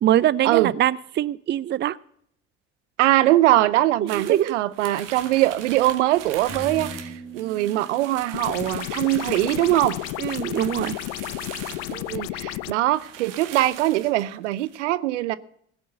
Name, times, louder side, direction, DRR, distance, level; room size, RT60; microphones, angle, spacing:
voice 1, 0.0-2.0 4.0-4.6 10.2-11.0, right 12 dB, 30° right, 0.5 m, -23 dB
voice 2, 3.0-10.0 11.9-15.4, right 15 dB, 80° right, 0.6 m, -22 dB
sound 1, 4.1-12.3 12.6-12.7 12.9-14.8, right 9 dB, 65° right, 1.8 m, -41 dB
sound 2, 6.5-10.3, right 1 dB, 35° left, 3.6 m, -41 dB
sound 3, 8.3-12.7, left 19 dB, 70° left, 0.5 m, -32 dB
16.5 x 6.4 x 7.7 m
hypercardioid pair, 60°, 35 cm